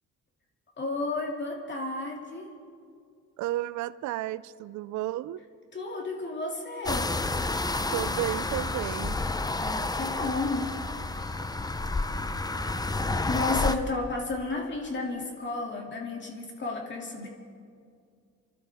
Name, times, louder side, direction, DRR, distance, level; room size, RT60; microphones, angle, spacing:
voice 1, 0.8-2.5 5.7-7.2 9.6-10.7 11.1-11.3 13.3-17.3, left 3 dB, 40° left, 0 dB, 2.6 m, -32 dB
voice 2, 3.4-5.4 7.9-9.2, right 15 dB, 70° right, 16 dB, 0.5 m, -32 dB
sound 1, 6.9-13.8, left 2 dB, 15° left, 0.6 m, -30 dB
28.5 x 12.5 x 3.5 m, 2.2 s
cardioid pair, 90°, 30 cm